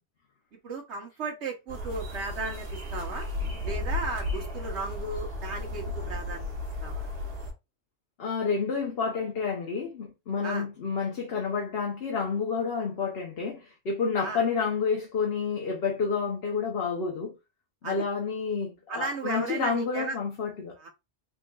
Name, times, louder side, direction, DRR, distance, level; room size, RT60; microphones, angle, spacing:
voice 1, 0.6-3.3 3.6-6.5 6.8-7.1 10.4-10.7 14.2-14.4 17.8-18.0 18.9-20.2 20.8-20.9, right 3 dB, 80° right, 1.3 m, -35 dB
sound 1, 1.7-7.5, left 2 dB, 55° right, 1.4 m, -34 dB
voice 2, 8.2-17.3 17.8-20.9, left 5 dB, 65° left, 1.1 m, -29 dB
3.9 x 3.7 x 2.3 m
omnidirectional pair, 1.1 m